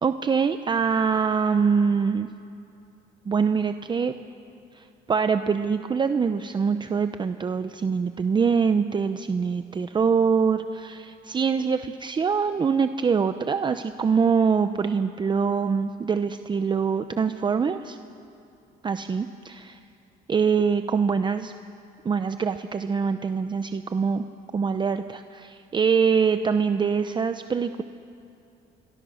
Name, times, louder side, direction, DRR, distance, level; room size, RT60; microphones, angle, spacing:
voice 1, 0.0-2.3 3.3-4.1 4.7-18.0 18.8-19.6 20.3-21.5 22.0-24.2 24.5-27.8, right 6 dB, 25° right, 9 dB, 0.7 m, -24 dB
28.0 x 23.5 x 6.5 m, 2.7 s
cardioid pair, 110°, 17 cm